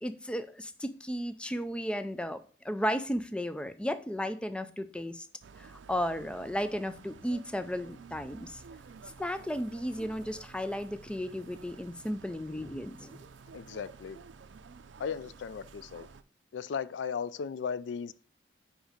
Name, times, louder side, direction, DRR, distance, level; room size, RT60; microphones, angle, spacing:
voice 1, 0.0-5.3 5.6-8.6 9.2-13.2, equal, 5° left, 0.4 m, -34 dB
sound 1, 5.4-16.2, right 5 dB, 85° right, 0.4 m, -52 dB
voice 2, 13.5-14.2 15.0-16.1 16.5-18.1, left 6 dB, 75° left, 0.4 m, -36 dB
5.2 x 4.9 x 5.0 m
head